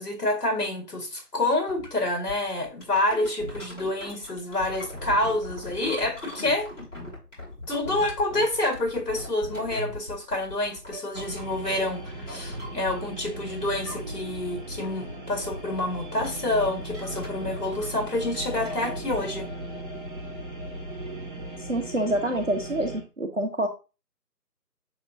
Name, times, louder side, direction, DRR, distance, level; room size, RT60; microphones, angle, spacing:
voice 1, 0.0-6.7 7.7-19.5, left 2 dB, 70° left, 3 dB, 1.8 m, -28 dB
sound 1, 1.7-1.9 2.3-13.3 13.6-14.4 14.7-19.0, left 1 dB, 45° left, 2.2 m, -40 dB
sound 2, 11.1-23.0, right 1 dB, 30° right, 0.9 m, -37 dB
voice 2, 21.6-23.7, right 1 dB, 50° right, 4 dB, 0.6 m, -27 dB
6.2 x 2.8 x 2.6 m, 0.31 s
figure-of-eight pair, 165°, 49 cm